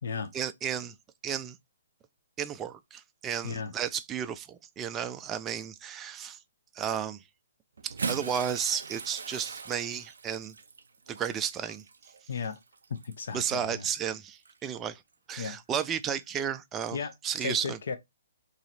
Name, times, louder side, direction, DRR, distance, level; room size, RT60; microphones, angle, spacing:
voice 1, 0.3-0.9 1.2-1.6 2.4-6.4 6.7-7.2 7.8-10.5 11.1-11.8 13.3-15.0 15.3-17.0 17.2-17.8, right 8 dB, 20° right, 0.4 m, -33 dB
Bathtub (filling or washing) / Splash splatter, 7.8-13.5 14.4-14.5 16.0-16.1, right 5 dB, 70° right, 0.5 m, -40 dB
voice 2, 12.3-12.6 13.0-13.9 15.4-15.6 16.9-17.1 17.4-18.0, left 5 dB, 60° left, 0.7 m, -35 dB
3.2 x 2.8 x 3.9 m
figure-of-eight pair, 130°, 0 cm